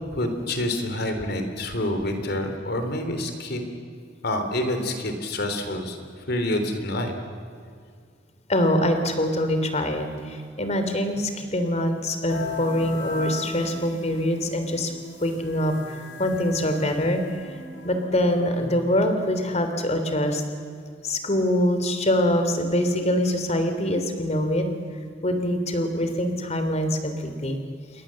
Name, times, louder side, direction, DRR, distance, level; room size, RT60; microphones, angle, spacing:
voice 1, 0.0-3.6 4.2-6.0 6.3-7.2, left 1 dB, 60° left, 6 dB, 3.4 m, -27 dB
voice 2, 8.5-14.9 15.2-17.2 17.8-20.4 21.0-24.7 25.2-27.6, left 1 dB, 35° left, 7 dB, 3.2 m, -24 dB
sound 1, 12.3-18.9, left 3 dB, 85° left, 5.2 m, -37 dB
28.5 x 22.5 x 7.6 m, 2.2 s
head